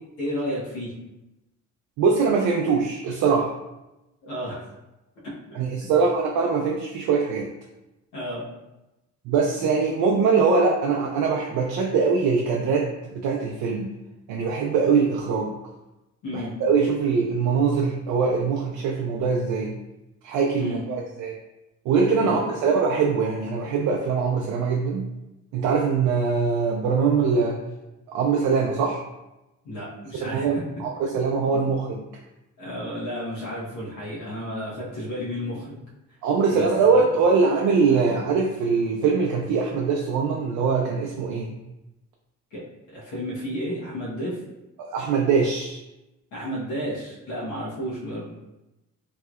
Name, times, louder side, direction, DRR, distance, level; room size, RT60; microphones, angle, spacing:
voice 1, 0.2-0.9 4.2-4.7 5.2-5.9 8.1-8.4 16.2-16.5 20.6-20.8 22.2-22.4 29.6-30.5 31.5-31.6 32.6-35.7 36.5-36.7 36.9-37.1 42.5-42.6 42.9-44.4 46.3-48.3, equal, 80° left, -6 dB, 1.2 m, -32 dB
voice 2, 2.0-3.5 5.6-7.5 9.3-13.9 14.3-15.5 16.3-19.8 20.2-21.3 21.9-25.0 25.5-27.6 28.1-29.0 30.1-32.0 36.2-41.6 44.8-45.8, right 5 dB, 85° right, 0 dB, 0.5 m, -22 dB
3.2 x 2.8 x 2.4 m, 0.96 s
cardioid pair, 90°, 30 cm